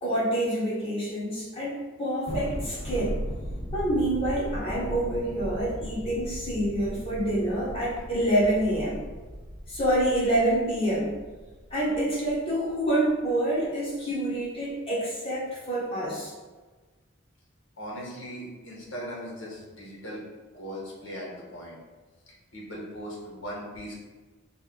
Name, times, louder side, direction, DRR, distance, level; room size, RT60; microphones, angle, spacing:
voice 1, 0.0-3.2 3.7-9.0 9.7-11.1 11.7-16.3, right 1 dB, 30° left, -8 dB, 1.4 m, -27 dB
Thunder, 2.3-12.9, equal, 70° right, 1.1 m, -37 dB
voice 2, 17.8-20.2 20.5-21.8 22.5-24.0, equal, 70° left, -4 dB, 1.3 m, -39 dB
4.2 x 2.2 x 3.9 m, 1.3 s
head